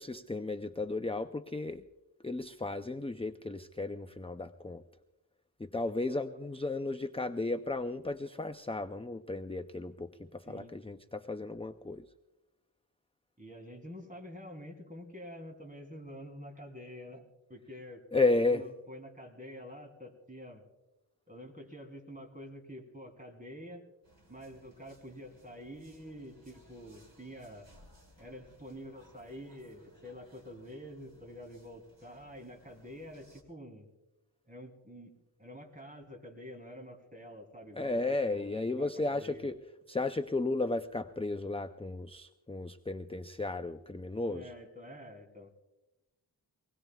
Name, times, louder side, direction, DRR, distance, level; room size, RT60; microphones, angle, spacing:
voice 1, 0.0-1.8 2.2-4.8 5.6-12.0 18.1-18.6 37.7-39.5 39.9-44.5, left 2 dB, 15° left, 9 dB, 0.4 m, -34 dB
voice 2, 13.4-20.6 21.3-23.8 24.3-27.7 28.2-33.9 34.4-35.1 35.4-39.5 44.3-45.5, equal, 20° right, 3 dB, 3.0 m, -48 dB
sound 1, 24.0-33.4, equal, 75° right, 2.8 m, -62 dB
24.5 x 20.0 x 2.3 m, 1.0 s
wide cardioid pair, 45°, 44 cm